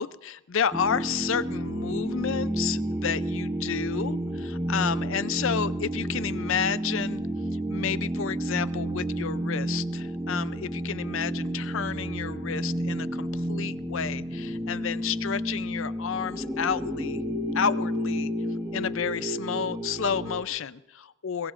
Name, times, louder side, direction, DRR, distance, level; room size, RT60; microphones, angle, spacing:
voice 1, 0.0-7.2 7.7-17.2 17.5-18.3 18.7-21.5, left 7 dB, 60° left, 15 dB, 0.5 m, -31 dB
sound 1, 0.7-20.4, equal, 10° right, 1.2 m, -31 dB
22.5 x 22.0 x 2.5 m, 0.96 s
head